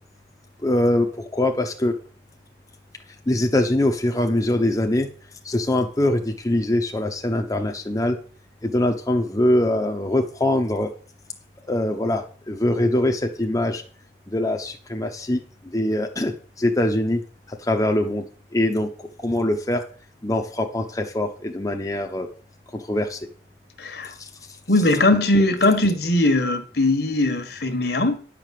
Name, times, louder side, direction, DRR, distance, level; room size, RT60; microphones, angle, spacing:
voice 1, 0.6-1.9 3.3-5.1 5.4-8.2 8.6-10.9 11.7-13.8 14.3-15.4 15.7-17.2 17.5-18.2 18.5-18.9 19.2-19.8 20.2-22.3 22.7-23.2 24.2-24.3, left 1 dB, 20° left, 0.8 m, -23 dB
voice 2, 23.8-24.1 24.7-28.2, left 2 dB, 60° left, 1.5 m, -20 dB
10.5 x 5.0 x 7.6 m
head